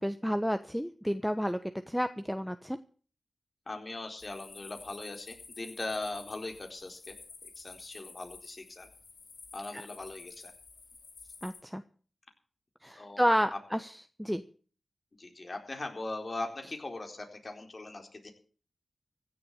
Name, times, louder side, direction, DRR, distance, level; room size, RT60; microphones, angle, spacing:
voice 1, 0.0-1.6 1.9-2.8 9.7-9.8 11.4-11.8 12.8-13.9 14.2-14.4, equal, ahead, 10 dB, 1.1 m, -30 dB
voice 2, 3.7-7.1 7.4-8.9 9.5-10.5 13.0-13.2 13.5-13.6 15.2-18.3, left 2 dB, 50° left, 4 dB, 4.4 m, -40 dB
sound 1, 4.2-11.6, left 4 dB, 80° left, 3.0 m, -51 dB
15.5 x 7.9 x 8.7 m, 0.42 s
cardioid pair, 45°, 0 cm